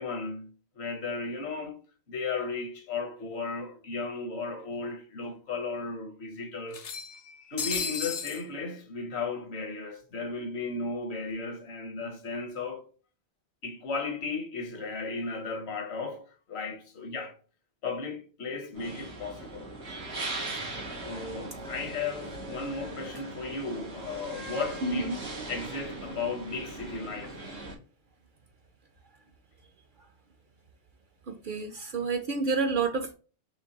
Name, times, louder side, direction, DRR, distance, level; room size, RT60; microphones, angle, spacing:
voice 1, 0.0-1.8 2.1-6.9 7.4-12.8 13.6-17.4 17.8-19.7 21.0-25.2 25.5-27.4, left 4 dB, 70° left, 1.1 m, -35 dB
sound 1, 3.3-3.4 3.7-3.8 4.9-5.0 5.3-5.4 6.7-8.4, left 5 dB, 55° left, 0.4 m, -34 dB
sound 2, 18.7-27.7, right 2 dB, 75° right, 1.9 m, -39 dB
voice 2, 24.8-25.2 31.4-33.1, right 4 dB, 60° right, 0.6 m, -29 dB
4.4 x 3.0 x 2.8 m
omnidirectional pair, 1.2 m